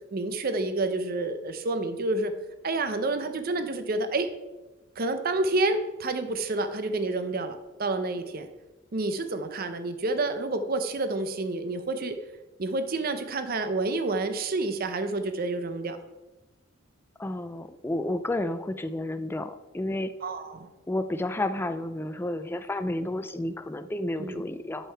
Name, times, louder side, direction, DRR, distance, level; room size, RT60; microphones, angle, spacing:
voice 1, 0.1-2.3 2.6-4.3 5.0-8.5 8.9-12.2 12.6-16.0 20.2-20.7 24.2-24.4, right 2 dB, 45° right, 9 dB, 0.6 m, -29 dB
voice 2, 17.2-20.1 20.9-24.9, left 1 dB, 10° left, 10 dB, 0.3 m, -31 dB
7.7 x 6.5 x 4.5 m, 1.1 s
head